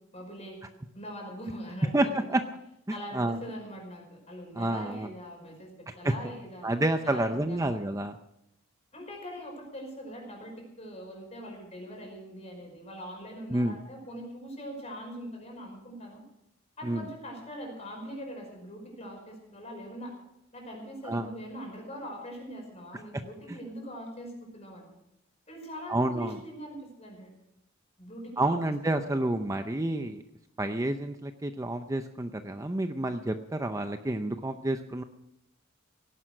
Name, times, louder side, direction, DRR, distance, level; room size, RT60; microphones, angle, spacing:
voice 1, 0.1-0.6 0.9-2.4 2.9-6.7 7.0-7.9 8.9-16.2 16.8-20.1 20.5-24.9 25.5-27.3 28.0-28.6 28.8-29.1, equal, 30° left, 1 dB, 5.5 m, -42 dB
voice 2, 1.9-2.4 2.9-3.4 4.6-5.1 6.0-6.1 6.6-8.2 13.5-13.8 16.8-17.0 21.0-21.3 23.5-23.6 25.9-26.4 28.4-30.2 30.6-35.0, right 1 dB, 15° right, 7 dB, 0.6 m, -29 dB
17.5 x 11.0 x 6.2 m, 0.84 s
head